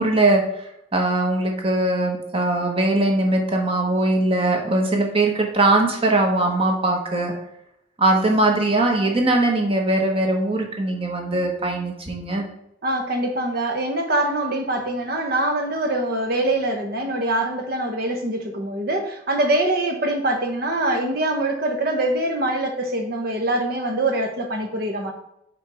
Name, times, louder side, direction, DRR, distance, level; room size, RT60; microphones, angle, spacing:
voice 1, 0.0-7.3 8.0-12.4, right 2 dB, 30° right, 2 dB, 1.2 m, -21 dB
voice 2, 12.8-25.1, right 1 dB, 60° right, 4 dB, 1.1 m, -24 dB
5.3 x 4.1 x 4.9 m, 0.79 s
head